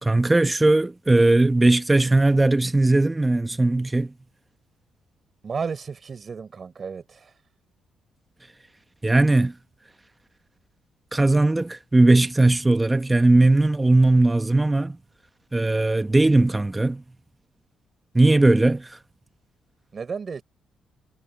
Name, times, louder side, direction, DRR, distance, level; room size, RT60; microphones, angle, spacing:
voice 1, 0.0-4.1 9.0-9.5 11.1-15.0 15.5-17.0 18.1-19.0, right 2 dB, 15° right, 1.3 m, -19 dB
voice 2, 5.4-7.4 19.9-20.4, right 5 dB, 40° right, 4.5 m, -33 dB
cardioid pair, 90°, 0 cm